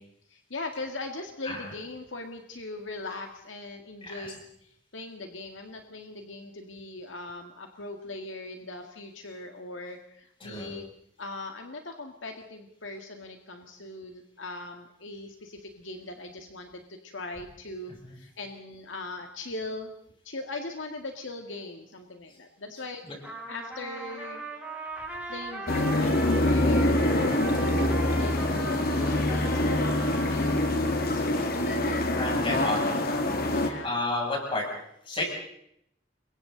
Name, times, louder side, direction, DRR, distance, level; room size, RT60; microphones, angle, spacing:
voice 1, 0.3-10.8 11.2-19.9 20.2-24.4 25.3-30.6 31.1-33.0 33.5-33.9, left 2 dB, 85° left, 4 dB, 2.0 m, -40 dB
voice 2, 4.0-4.3 10.4-10.8 18.0-18.2 22.7-22.8 23.1-23.2 32.1-33.0 33.8-34.6 35.1-35.3, left 2 dB, 30° left, -1 dB, 7.5 m, -31 dB
Trumpet, 23.2-31.1, right 2 dB, 10° right, 6.5 m, -39 dB
sound 1, 25.7-33.7, left 1 dB, 55° left, 2.2 m, -25 dB
28.0 x 23.5 x 4.0 m, 0.74 s
head